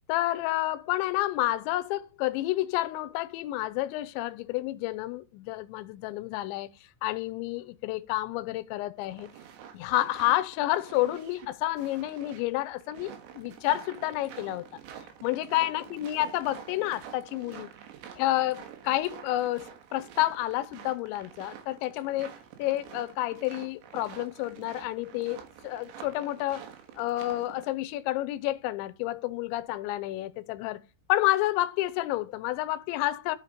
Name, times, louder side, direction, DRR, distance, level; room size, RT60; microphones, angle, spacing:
voice 1, 0.1-6.7 7.0-9.3 9.7-14.7 15.2-17.7 18.2-22.3 22.6-26.7 26.9-30.8 31.1-33.4, left 16 dB, 85° left, 2.9 m, -30 dB
sound 1, 9.0-27.7, right 9 dB, 80° right, 3.7 m, -47 dB
13.5 x 5.2 x 5.0 m
omnidirectional pair, 5.2 m